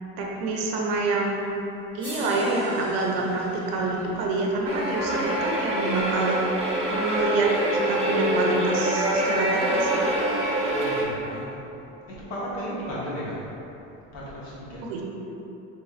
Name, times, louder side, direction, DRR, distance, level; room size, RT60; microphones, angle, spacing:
voice 1, 0.2-1.4 1.9-6.4 6.9-10.1 14.9-15.0, right 2 dB, 75° right, -1 dB, 0.7 m, -26 dB
sound 1, 1.4-1.5 2.0-6.2 7.5-7.6, equal, 5° left, 0.7 m, -45 dB
Crow, 3.0-11.5, left 1 dB, 85° left, 0.6 m, -40 dB
sound 2, 4.6-11.0, right 1 dB, 20° right, 0.4 m, -26 dB
voice 2, 10.7-11.6 12.1-13.5 14.1-14.8, equal, 60° left, -7 dB, 1.2 m, -34 dB
4.3 x 3.2 x 2.4 m, 2.9 s
cardioid pair, 165°, 30 cm